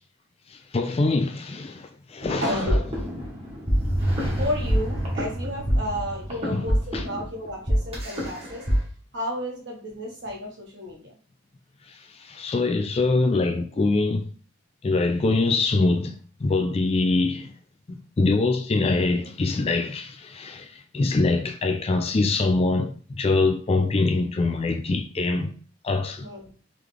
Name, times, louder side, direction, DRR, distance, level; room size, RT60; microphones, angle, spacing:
voice 1, 0.5-2.6 6.4-7.0 11.9-14.3 14.8-16.1 16.4-17.5 17.9-25.5 25.8-26.3, left 3 dB, 30° left, 0.3 m, -24 dB
sound 1, 2.2-8.8, equal, 25° right, 1.2 m, -25 dB
voice 2, 2.4-2.8 4.4-8.6 9.1-11.1 15.2-15.5 23.7-23.9 26.2-26.5, left 1 dB, 55° right, 1.4 m, -32 dB
3.7 x 3.2 x 3.3 m
head